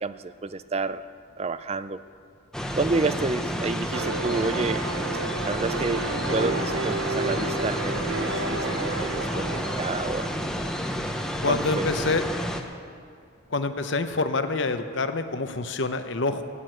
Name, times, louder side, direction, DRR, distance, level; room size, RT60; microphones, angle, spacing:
voice 1, 0.0-1.0 1.4-2.0 2.8-4.8 5.5-10.4 11.5-11.8, right 3 dB, 30° right, 13 dB, 0.4 m, -29 dB
sound 1, 2.5-12.6, equal, 5° left, 0.8 m, -30 dB
sound 2, 3.9-11.4, right 3 dB, 70° right, 0.9 m, -32 dB
voice 2, 11.4-12.2 13.5-16.4, left 3 dB, 55° left, 9 dB, 0.9 m, -26 dB
15.5 x 10.0 x 7.7 m, 2.2 s
head